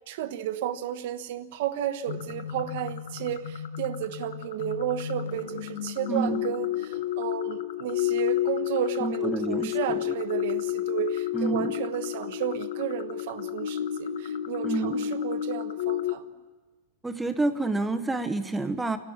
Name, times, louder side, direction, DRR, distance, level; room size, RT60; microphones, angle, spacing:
voice 1, 0.1-16.2, right 11 dB, 55° right, 11 dB, 1.2 m, -33 dB
sound 1, 2.1-16.1, left 12 dB, 75° left, 1.2 m, -31 dB
voice 2, 6.1-6.5 9.0-9.7 10.0-10.1 11.3-11.7 14.6-15.0 17.0-19.0, right 3 dB, 5° right, 9 dB, 0.9 m, -28 dB
29.0 x 12.0 x 8.7 m, 1.4 s
supercardioid pair, 165°, 0 cm